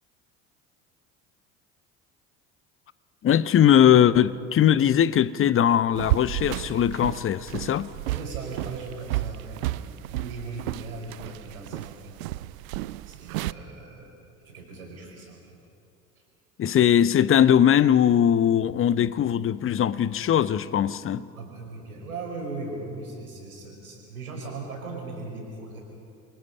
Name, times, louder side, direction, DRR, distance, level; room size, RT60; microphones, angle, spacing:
voice 1, 3.2-7.9 16.6-21.2, left 9 dB, 30° left, 0.8 m, -20 dB
sound 1, 6.0-13.5, right 16 dB, 70° right, 0.7 m, -32 dB
voice 2, 8.1-12.1 13.1-14.1 14.4-15.6 21.3-25.8, right 3 dB, 85° right, 5.2 m, -38 dB
28.5 x 23.5 x 5.5 m
figure-of-eight pair, 65°, 42 cm